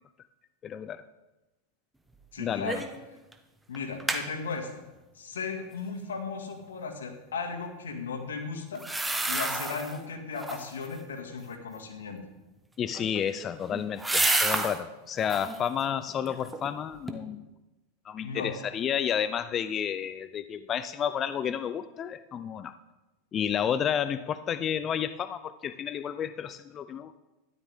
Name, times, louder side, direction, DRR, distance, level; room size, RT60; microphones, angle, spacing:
voice 1, 0.6-1.0 2.4-2.8 12.8-17.4 18.1-22.7 23.3-27.2, left 8 dB, 30° left, 13 dB, 0.5 m, -31 dB
voice 2, 2.3-2.8 3.7-4.8 5.2-12.2 18.2-18.5, left 5 dB, 90° left, 2 dB, 2.2 m, -36 dB
sound 1, 2.7-3.0 3.3-3.4 3.7-4.2 8.7-10.0 10.3-10.9 12.8-14.8 15.2-15.6 16.1-16.7 17.1-17.2, right 2 dB, 5° right, 1.2 m, -30 dB
13.5 x 11.5 x 3.7 m, 1.0 s
hypercardioid pair, 110°, 0 cm